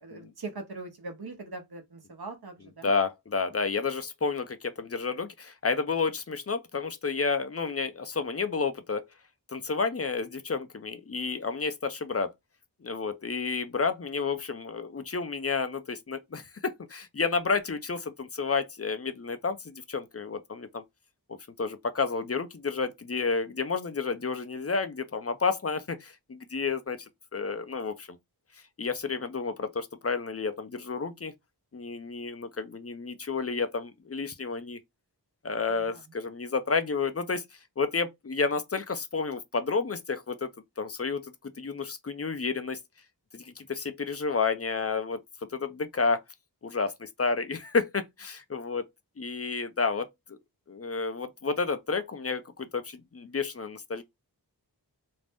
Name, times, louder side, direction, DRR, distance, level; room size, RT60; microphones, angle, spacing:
voice 1, 0.0-2.9 35.7-36.0, right 3 dB, 65° right, 0.8 m, -41 dB
voice 2, 2.8-9.1 9.5-12.3 12.8-20.8 21.6-27.1 27.3-28.1 28.8-31.3 31.7-34.8 35.4-42.8 43.3-45.2 45.5-46.2 46.6-48.9 49.2-50.4 50.7-54.0, left 4 dB, 35° left, 0.5 m, -31 dB
2.5 x 2.0 x 3.4 m
wide cardioid pair, 40°, 41 cm